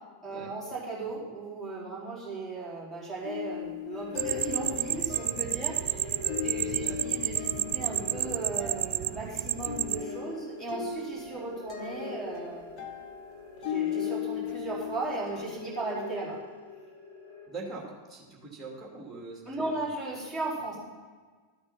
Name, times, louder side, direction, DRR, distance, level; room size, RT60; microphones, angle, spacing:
voice 1, 0.2-12.8 13.6-16.4 19.5-20.8, right 2 dB, 15° left, -4 dB, 4.4 m, -36 dB
sound 1, 3.2-15.5, left 9 dB, 40° left, 1.5 m, -38 dB
sound 2, 3.9-17.5, left 3 dB, 75° left, 1.9 m, -45 dB
sound 3, 4.2-10.0, right 14 dB, 45° right, 0.4 m, -31 dB
voice 2, 6.6-7.1 17.5-19.9, right 3 dB, 5° right, -1 dB, 2.6 m, -43 dB
12.5 x 8.7 x 5.8 m, 1.5 s
figure-of-eight pair, 90°, 0 cm